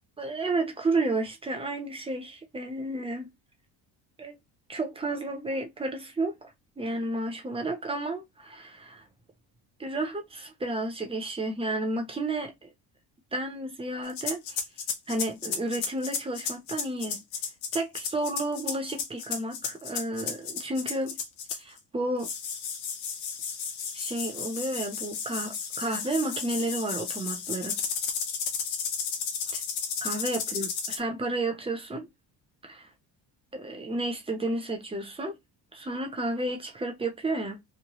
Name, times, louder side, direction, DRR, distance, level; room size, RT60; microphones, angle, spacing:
voice 1, 0.2-3.3 4.2-4.4 4.7-9.1 9.8-12.7 13.3-14.6 15.1-17.2 17.7-21.2 21.5-22.3 23.9-27.8 29.5-29.6 30.0-32.1 32.6-32.9 33.5-35.4 35.7-37.6, right 2 dB, 15° right, 0.6 m, -32 dB
sound 1, 14.1-21.8 22.2-31.0, left 6 dB, 85° left, 0.9 m, -33 dB
3.1 x 2.1 x 2.9 m
cardioid pair, 150°, 44 cm